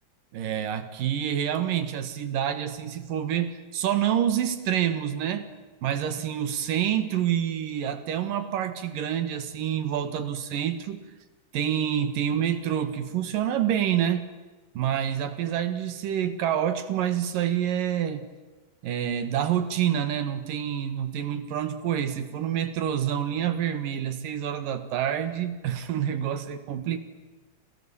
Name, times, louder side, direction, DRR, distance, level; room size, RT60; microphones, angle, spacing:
voice 1, 0.3-5.5 5.8-11.0 11.5-14.3 14.7-18.3 18.8-27.0, right 10 dB, 65° right, 10 dB, 3.1 m, -27 dB
29.5 x 27.5 x 7.1 m, 1.2 s
omnidirectional pair, 4.4 m